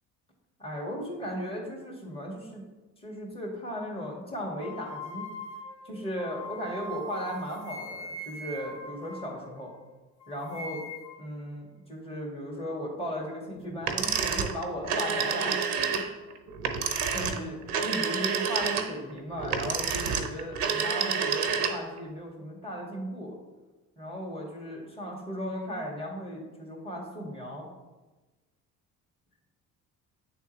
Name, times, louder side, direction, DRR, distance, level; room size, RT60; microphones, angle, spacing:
voice 1, 0.6-2.7 3.0-5.3 5.8-9.7 10.3-10.8 11.2-16.1 17.1-23.3 24.0-27.7, equal, 10° left, -2 dB, 2.0 m, -36 dB
sound 1, 4.6-9.9 10.2-11.3, left 1 dB, 55° left, 1.1 m, -41 dB
sound 2, 13.8-22.0, right 6 dB, 70° right, 0.7 m, -29 dB
8.8 x 3.5 x 3.1 m, 1.2 s
figure-of-eight pair, 50°, 47 cm